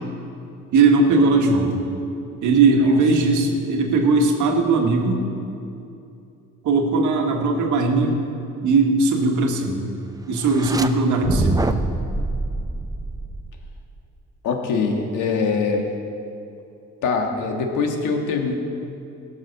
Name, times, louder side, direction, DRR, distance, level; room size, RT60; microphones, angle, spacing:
voice 1, 0.7-1.8 2.4-5.2 6.6-8.1 8.6-9.9 10.3-11.7, right 3 dB, 80° right, 2 dB, 1.7 m, -19 dB
sound 1, 10.4-10.9 11.2-13.8, right 2 dB, 10° right, 0.6 m, -25 dB
voice 2, 14.4-15.8 17.0-18.5, left 4 dB, 85° left, 3 dB, 1.7 m, -23 dB
17.0 x 6.1 x 6.5 m, 2.7 s
cardioid pair, 90°, 30 cm